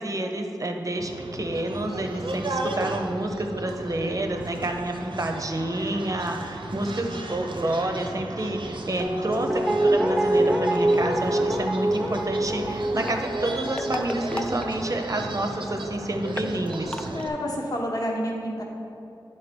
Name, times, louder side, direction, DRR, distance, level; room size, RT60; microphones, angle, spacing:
voice 1, 0.0-17.1, right 1 dB, 40° right, 4 dB, 0.8 m, -29 dB
sound 1, 1.0-17.3, right 2 dB, 75° right, 0.7 m, -35 dB
Guitar, 9.0-16.0 16.3-16.4, right 1 dB, 5° right, 0.9 m, -26 dB
sound 2, 10.6-11.1 12.8-15.3 15.6-15.7 15.9-16.0 16.3-17.2, left 1 dB, 10° left, 0.4 m, -35 dB
voice 2, 17.1-18.6, equal, 50° left, -1 dB, 1.1 m, -29 dB
10.5 x 3.9 x 5.2 m, 2.8 s
wide cardioid pair, 70°, 8 cm